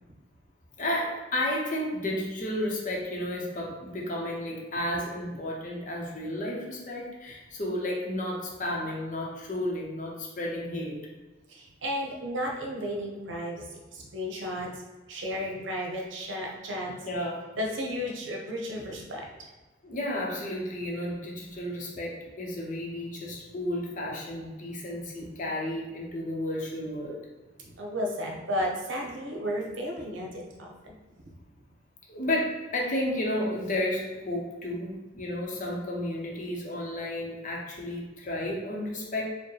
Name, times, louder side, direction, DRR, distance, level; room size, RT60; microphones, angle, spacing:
voice 1, 0.8-10.9 17.1-17.4 19.8-27.2 32.1-39.3, left 1 dB, 45° left, -2 dB, 0.7 m, -32 dB
voice 2, 11.5-14.8 15.1-16.9 17.6-19.5 27.6-31.0, equal, 85° right, 0 dB, 0.8 m, -33 dB
4.5 x 2.1 x 3.2 m, 1.2 s
head